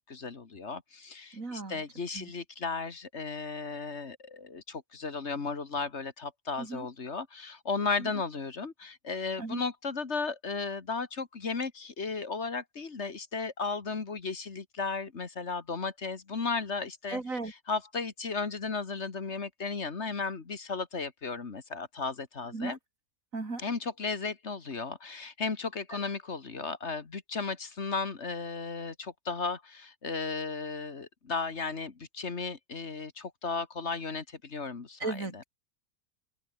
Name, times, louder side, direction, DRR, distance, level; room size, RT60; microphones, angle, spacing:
voice 1, 0.1-22.8 23.6-35.4, left 4 dB, 55° left, 2.0 m, -35 dB
voice 2, 1.3-1.8 2.1-2.3 6.6-6.9 8.0-8.1 9.4-9.6 17.1-17.5 22.5-22.8 23.3-23.6 25.9-26.0 35.0-35.4, right 3 dB, 70° right, 3.9 m, -36 dB
open air
omnidirectional pair, 1.4 m